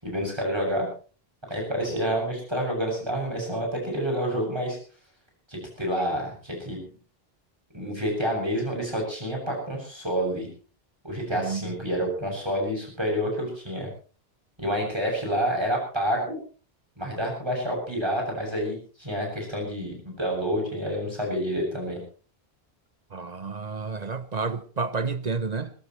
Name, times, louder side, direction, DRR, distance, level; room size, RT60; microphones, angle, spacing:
voice 1, 0.0-0.9 1.5-4.8 5.5-6.8 7.7-10.5 11.0-13.9 14.6-16.4 17.0-22.0, equal, 25° right, 7.8 m, -28 dB
voice 2, 11.3-11.7 23.1-25.7, right 4 dB, 45° right, 1.0 m, -30 dB
21.0 x 20.5 x 3.2 m
omnidirectional pair, 1.0 m